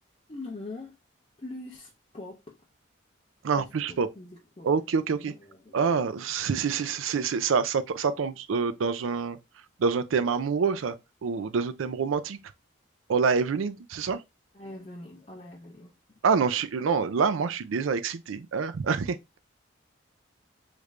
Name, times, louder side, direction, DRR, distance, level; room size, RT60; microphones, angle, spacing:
voice 1, 0.3-1.0 1.4-2.6 3.6-4.7 5.1-6.1 6.5-6.8 14.5-15.9, left 2 dB, 30° left, 0.5 m, -43 dB
voice 2, 3.4-4.1 4.6-5.3 5.7-9.4 9.8-11.0 11.2-12.4 13.1-14.2 16.2-19.4, right 5 dB, 85° right, 0.4 m, -26 dB
3.2 x 2.5 x 3.2 m
head